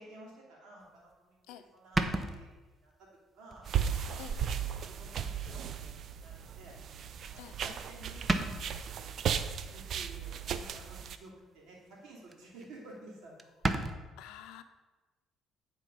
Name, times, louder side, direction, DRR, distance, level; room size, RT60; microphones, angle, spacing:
voice 1, 0.0-1.4 1.7-3.7 4.0-4.3 4.9-6.8 7.3-8.4 8.9-13.4, right 2 dB, 75° right, -3 dB, 2.9 m, -53 dB
sound 1, 1.1-1.2 1.9-2.9 3.5-3.8 4.2-4.3 5.6-5.7 7.4-7.7 8.0-8.1 8.3-8.9 10.8-11.3 11.7-12.0 12.3-12.4 12.6-12.7 13.0-13.1 13.4-13.9, right 2 dB, 25° right, 0.7 m, -33 dB
sound 2, 3.7-11.2, right 8 dB, 60° right, 0.5 m, -36 dB
voice 2, 14.2-14.6, left 11 dB, 90° left, 10 dB, 0.5 m, -48 dB
9.8 x 4.4 x 5.4 m, 1.2 s
cardioid pair, 95°, 0 cm